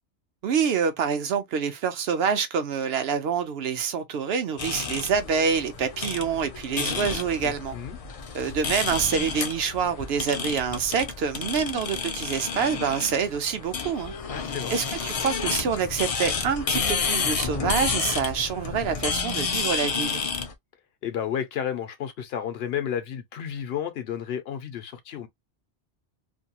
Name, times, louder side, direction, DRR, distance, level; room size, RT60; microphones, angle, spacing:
voice 1, 0.4-7.7 8.3-14.1 14.7-20.2, right 6 dB, 70° right, 0.8 m, -26 dB
sound 1, 4.6-20.5, left 5 dB, 50° left, 0.4 m, -30 dB
voice 2, 7.4-8.0 14.2-14.8 21.0-25.3, left 9 dB, 70° left, 0.8 m, -32 dB
2.6 x 2.2 x 2.8 m
omnidirectional pair, 1.1 m